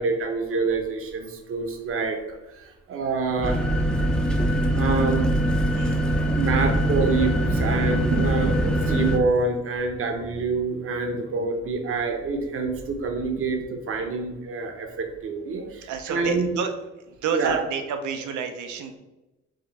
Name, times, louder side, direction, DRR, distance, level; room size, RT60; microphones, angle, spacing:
voice 1, 0.0-3.6 4.7-5.5 6.3-16.5 17.3-17.6, right 4 dB, 45° right, 3 dB, 0.8 m, -27 dB
sound 1, 3.4-9.2, right 1 dB, 5° left, 0.5 m, -22 dB
voice 2, 5.7-6.5 8.1-8.4 15.8-16.7 17.1-19.0, right 6 dB, 80° right, 7 dB, 0.7 m, -30 dB
4.9 x 2.4 x 4.1 m, 1.0 s
cardioid pair, 90°, 30 cm